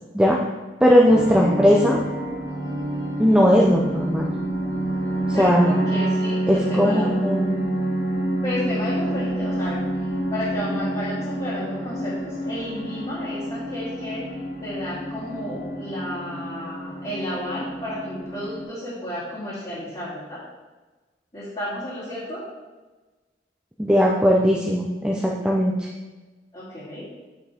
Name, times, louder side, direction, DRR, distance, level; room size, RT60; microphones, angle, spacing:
voice 1, 0.8-2.0 3.2-4.3 5.3-5.7 6.5-7.6 23.8-25.9, equal, 5° right, -2 dB, 0.6 m, -18 dB
sound 1, 1.1-18.6, right 1 dB, 90° left, 2.1 m, -28 dB
voice 2, 5.3-7.2 8.4-9.8 10.3-14.3 14.6-20.4 21.3-22.4 26.5-27.1, left 1 dB, 30° left, -13 dB, 2.6 m, -32 dB
8.1 x 6.0 x 3.5 m, 1.2 s
head